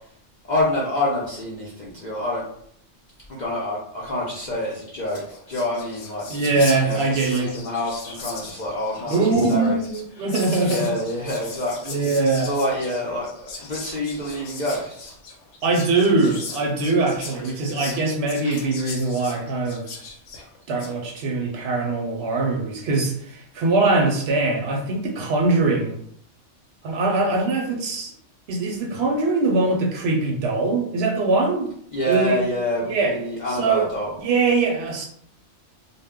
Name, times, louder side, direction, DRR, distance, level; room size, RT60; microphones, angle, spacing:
voice 1, 0.5-2.4 3.3-6.2 6.8-9.2 9.5-9.8 10.6-12.0 12.5-15.1 31.9-34.1, left 1 dB, 55° left, -5 dB, 0.5 m, -27 dB
Whispering, 4.7-4.8 5.0-21.0, left 4 dB, 70° left, 0.9 m, -38 dB
voice 2, 6.3-7.5 9.1-10.9 11.9-12.5 15.6-19.8 20.7-26.0 26.8-28.1 28.5-31.7 32.1-32.4 32.9-33.1 33.5-33.9 34.2-35.1, right 3 dB, 65° right, 0 dB, 0.8 m, -22 dB
2.1 x 2.1 x 3.5 m, 0.67 s
omnidirectional pair, 1.3 m